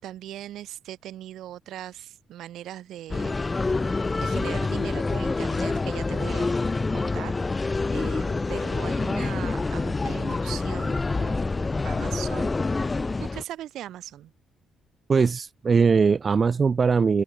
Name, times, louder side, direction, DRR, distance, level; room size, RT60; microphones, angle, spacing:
voice 1, 0.0-6.5 6.9-7.3 7.9-12.9 13.2-14.3, right 12 dB, 75° right, 7.6 m, -40 dB
sound 1, 3.1-13.4, left 3 dB, 25° left, 0.8 m, -27 dB
voice 2, 15.1-17.2, right 5 dB, 40° right, 1.0 m, -20 dB
open air
cardioid pair, 85°, 0 cm